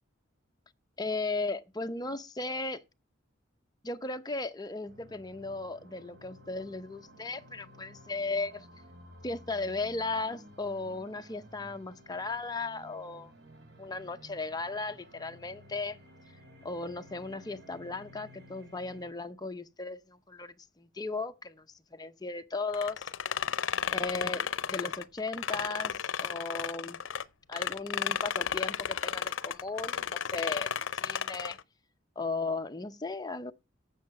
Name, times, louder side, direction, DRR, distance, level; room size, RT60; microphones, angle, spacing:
voice 1, 1.0-2.8 3.8-8.7 9.2-13.3 13.8-16.0 16.6-21.7 21.9-23.0 23.9-27.0 27.5-31.6 32.2-33.5, left 3 dB, 20° left, 0.7 m, -36 dB
sound 1, 4.8-19.1, left 1 dB, 60° right, 3.6 m, -54 dB
sound 2, 22.7-27.2 27.5-31.6, left 8 dB, 80° left, 0.6 m, -33 dB
11.0 x 7.4 x 5.8 m
head